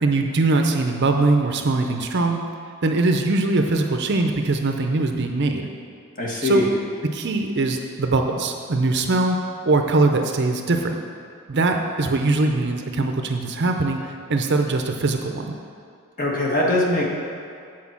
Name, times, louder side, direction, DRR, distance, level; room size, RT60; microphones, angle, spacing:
voice 1, 0.0-2.4 2.8-5.7 6.4-6.6 7.1-9.4 9.6-11.0 11.5-15.5, right 3 dB, 50° right, 4 dB, 0.6 m, -21 dB
voice 2, 6.2-6.7 16.2-17.0, left 2 dB, 35° left, -3 dB, 1.4 m, -21 dB
8.2 x 4.5 x 7.2 m, 2.4 s
head